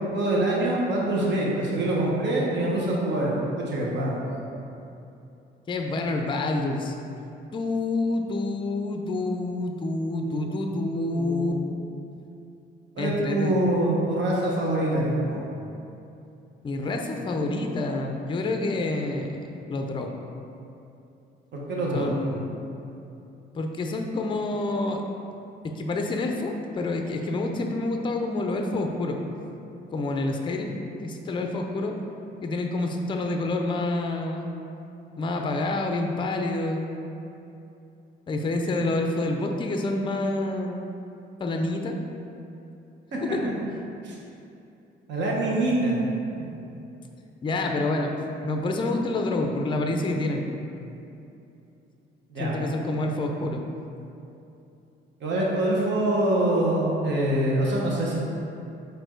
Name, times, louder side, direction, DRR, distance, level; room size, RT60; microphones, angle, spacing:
voice 1, 0.1-4.4 10.9-11.6 13.0-15.4 21.5-22.1 43.1-43.2 44.0-44.1 45.1-46.0 52.3-52.5 55.2-58.2, right 1 dB, 65° right, -4 dB, 1.0 m, -25 dB
voice 2, 5.7-6.9 7.5-11.5 13.0-13.6 16.6-20.1 21.9-22.5 23.5-25.0 25.6-29.2 29.9-30.7 31.0-31.9 32.4-34.6 35.2-36.9 38.3-40.8 41.4-42.0 43.2-43.5 47.4-48.1 48.4-50.5 52.4-53.6, left 2 dB, 25° left, 3 dB, 0.4 m, -28 dB
4.3 x 2.6 x 4.4 m, 2.7 s
cardioid pair, 90°, 20 cm